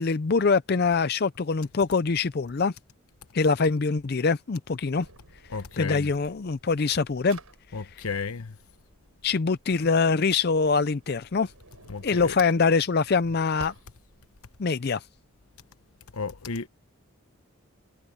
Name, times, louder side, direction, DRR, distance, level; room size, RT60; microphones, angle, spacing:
voice 1, 0.0-2.7 3.3-5.1 5.8-7.4 9.2-11.5 12.0-13.7 14.6-15.0, left 4 dB, 45° left, 0.5 m, -24 dB
Drawer open or close, 4.7-14.7, right 2 dB, 90° right, 7.2 m, -53 dB
voice 2, 5.5-6.1 7.7-8.6 11.9-12.4 16.1-16.7, left 4 dB, 85° left, 1.1 m, -33 dB
head